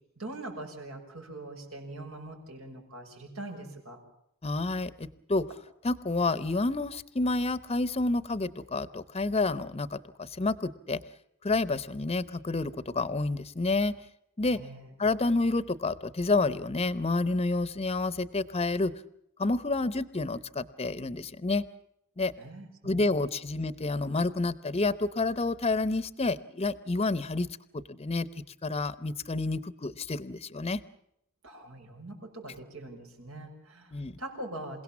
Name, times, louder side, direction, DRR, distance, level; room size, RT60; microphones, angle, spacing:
voice 1, 0.2-4.0 14.5-14.9 22.4-23.2 31.4-34.8, right 2 dB, 85° right, 2 dB, 6.5 m, -43 dB
voice 2, 4.4-5.4 5.8-11.0 11.4-13.9 14.4-14.6 15.0-18.9 19.4-21.6 22.2-22.3 22.8-27.5 27.9-28.3 28.6-30.8 33.9-34.1, left 3 dB, 30° left, 16 dB, 0.8 m, -29 dB
28.0 x 17.5 x 7.3 m, 0.75 s
head